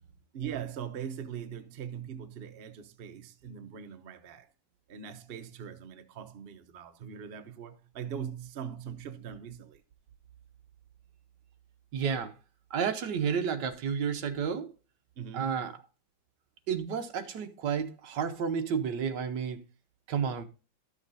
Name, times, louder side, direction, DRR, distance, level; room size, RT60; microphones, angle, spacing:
voice 1, 0.3-4.5 4.9-9.8 15.2-15.7, right 8 dB, 90° right, 0.5 m, -41 dB
voice 2, 11.9-12.3 12.7-14.7 15.3-15.7 16.7-19.6 20.1-20.5, right 7 dB, 65° right, 1.4 m, -31 dB
12.0 x 6.5 x 2.6 m
omnidirectional pair, 2.2 m